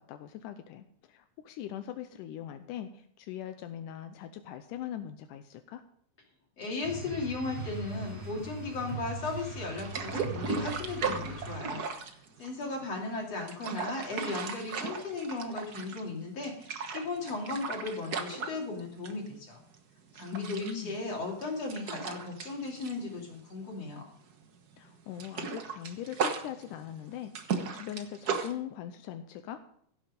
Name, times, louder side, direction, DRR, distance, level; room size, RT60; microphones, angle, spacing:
voice 1, 0.0-5.8 20.3-21.0 24.8-29.6, left 10 dB, 85° left, 9 dB, 2.2 m, -41 dB
voice 2, 6.6-11.9 12.4-19.6 20.2-24.1, left 3 dB, 50° left, -1 dB, 3.8 m, -36 dB
sound 1, 6.8-12.0, right 3 dB, 50° right, 6.3 m, -40 dB
sound 2, 9.8-12.8 13.3-16.1 16.4-19.3 19.6-19.8 20.2-24.0 24.2-24.4 24.7-28.5, right 5 dB, 80° right, 0.8 m, -36 dB
16.0 x 7.7 x 5.2 m, 0.66 s
omnidirectional pair, 3.8 m